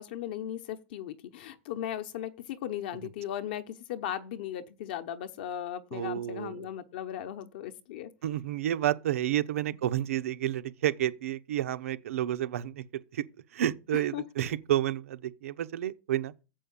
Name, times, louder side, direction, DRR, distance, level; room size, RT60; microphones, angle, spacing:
voice 1, 0.0-8.1 14.1-14.2, left 11 dB, 45° left, 0.8 m, -37 dB
voice 2, 5.9-6.7 8.2-12.8 13.1-13.2 13.5-16.3, right 12 dB, 90° right, 0.8 m, -30 dB
7.4 x 5.5 x 7.1 m
supercardioid pair, 180°, 7 cm